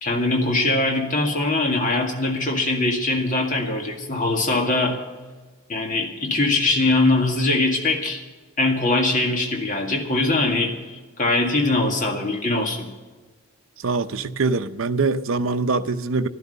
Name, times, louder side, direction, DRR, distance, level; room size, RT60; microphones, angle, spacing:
voice 1, 0.0-5.0 5.7-8.2 8.6-12.9, left 2 dB, 35° left, 2.0 m, -22 dB
voice 2, 13.8-16.3, right 3 dB, 70° right, 0.6 m, -23 dB
12.0 x 12.0 x 6.7 m
head